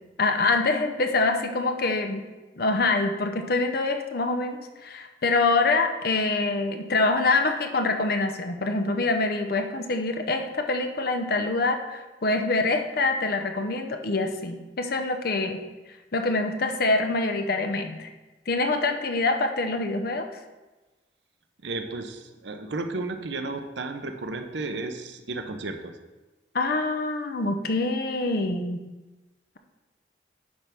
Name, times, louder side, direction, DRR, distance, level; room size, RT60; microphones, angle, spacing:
voice 1, 0.2-2.2 2.6-15.6 16.1-18.1 18.5-20.3 26.5-28.8, left 3 dB, 55° left, 6 dB, 0.7 m, -25 dB
voice 2, 21.6-25.9, right 3 dB, 70° right, 6 dB, 0.8 m, -33 dB
9.6 x 3.5 x 5.9 m, 1.2 s
head